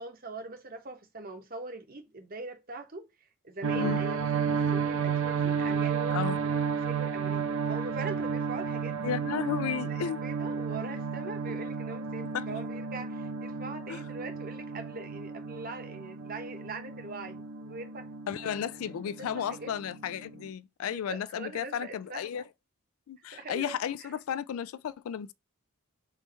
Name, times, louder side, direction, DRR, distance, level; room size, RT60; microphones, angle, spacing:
voice 1, 0.0-3.1 3.4-9.2 9.9-18.1 18.5-18.7 19.2-19.7 20.8-22.4 23.3-24.1, right 3 dB, 45° right, 0.9 m, -42 dB
sound 1, 3.6-20.5, right 6 dB, 70° right, 0.6 m, -32 dB
voice 2, 9.0-10.2 12.3-12.5 13.9-14.0 18.3-22.4 23.1-25.3, left 8 dB, 80° left, 0.3 m, -33 dB
3.3 x 3.1 x 4.1 m
head